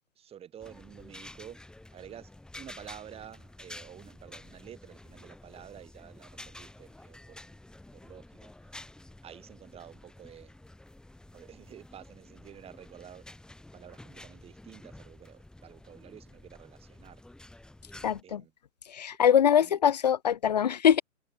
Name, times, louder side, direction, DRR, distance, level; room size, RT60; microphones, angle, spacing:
voice 1, 0.2-1.6 1.9-7.4 7.9-8.7 9.2-10.5 11.2-13.3 13.7-17.2 18.2-18.5 19.5-19.8, right 10 dB, 15° right, 2.9 m, -50 dB
sound 1, 0.6-18.2, left 1 dB, ahead, 1.6 m, -50 dB
voice 2, 18.0-18.4 18.9-21.0, left 9 dB, 35° left, 0.4 m, -23 dB
figure-of-eight pair, 120°, 41 cm